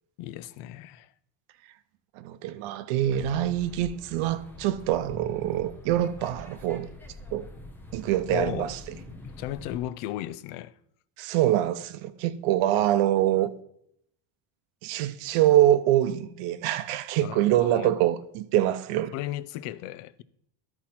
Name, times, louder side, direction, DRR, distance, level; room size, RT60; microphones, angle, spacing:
voice 1, 0.2-1.1 8.3-8.7 9.1-10.7 17.2-18.0 19.1-20.2, left 14 dB, 75° left, 0.6 m, -35 dB
voice 2, 2.2-6.9 7.3-7.5 7.9-8.8 11.2-13.5 14.8-19.1, right 12 dB, 80° right, 0.7 m, -25 dB
sound 1, 3.0-9.8, left 2 dB, 5° left, 0.3 m, -44 dB
12.5 x 4.4 x 4.2 m
cardioid pair, 165°, 49 cm